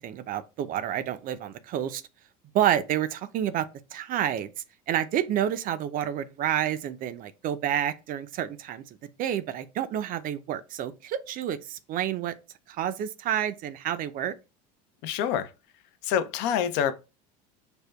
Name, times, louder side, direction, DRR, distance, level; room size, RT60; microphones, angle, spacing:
voice 1, 0.0-2.0 2.5-4.5 4.9-8.8 9.2-12.3 12.7-14.3, right 10 dB, 45° right, 0.4 m, -29 dB
voice 2, 15.0-15.5 16.1-16.9, left 9 dB, 60° left, 0.5 m, -26 dB
5.0 x 2.1 x 2.2 m
supercardioid pair, 95°, 21 cm